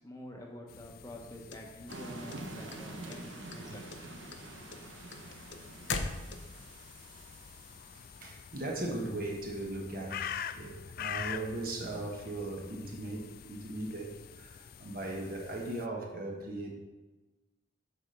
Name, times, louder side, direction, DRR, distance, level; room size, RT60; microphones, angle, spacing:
voice 1, 0.0-3.9, left 1 dB, 15° left, 0 dB, 1.0 m, -47 dB
sound 1, 0.7-15.9, left 8 dB, 50° left, 0.3 m, -46 dB
sound 2, 1.5-2.8 3.1-3.6 3.9-6.7, left 4 dB, 65° left, 0.7 m, -38 dB
sound 3, 1.9-8.6, right 2 dB, 75° right, 1.1 m, -47 dB
voice 2, 8.2-16.8, right 2 dB, 45° right, 1 dB, 1.3 m, -38 dB
8.3 x 4.3 x 6.6 m, 1.1 s
head